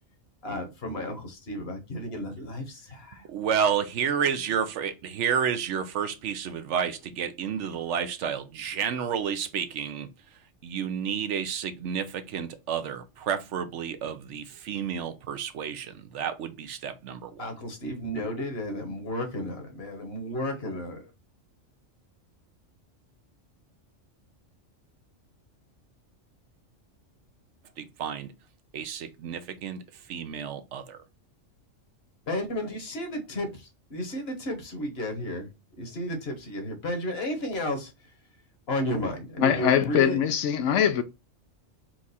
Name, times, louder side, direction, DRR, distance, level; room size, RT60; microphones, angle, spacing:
voice 1, 0.4-3.2 17.4-21.1 32.3-33.5 33.9-35.5 35.8-37.9 38.7-40.2, equal, 55° left, 1.3 m, -33 dB
voice 2, 3.3-10.1 10.6-17.5 27.8-28.3 28.7-29.8 30.1-31.0, right 7 dB, 70° right, 0.9 m, -30 dB
voice 3, 39.4-41.0, left 9 dB, 75° left, 0.9 m, -22 dB
4.5 x 2.4 x 4.1 m
omnidirectional pair, 1.3 m